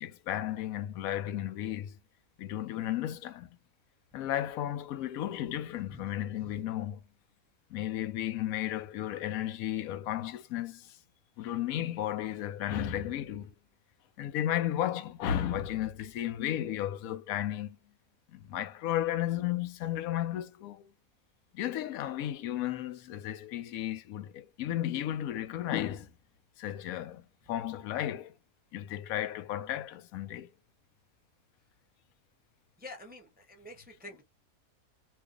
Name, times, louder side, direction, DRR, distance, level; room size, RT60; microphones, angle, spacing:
voice 1, 0.0-1.9 2.4-3.5 4.1-7.0 7.7-10.9 11.4-13.5 14.2-17.8 18.3-20.8 21.5-26.1 26.6-28.3 28.7-30.5, left 12 dB, 85° left, 1.0 m, -34 dB
voice 2, 32.8-34.2, left 2 dB, 10° right, 0.4 m, -48 dB
2.6 x 2.5 x 3.6 m
omnidirectional pair, 1.5 m